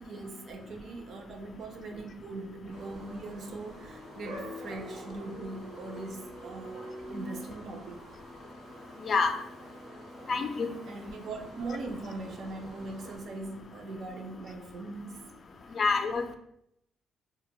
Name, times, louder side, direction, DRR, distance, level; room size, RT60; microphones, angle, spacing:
voice 1, 0.0-6.8 7.1-8.0 10.9-15.3, right 3 dB, 60° right, 4 dB, 0.4 m, -40 dB
sound 1, 2.7-13.2, equal, 85° right, 0.8 m, -47 dB
voice 2, 9.0-9.3 10.3-10.7 15.8-16.2, left 4 dB, 50° left, 6 dB, 0.3 m, -27 dB
2.1 x 2.0 x 3.7 m, 0.75 s
cardioid pair, 90°, 0 cm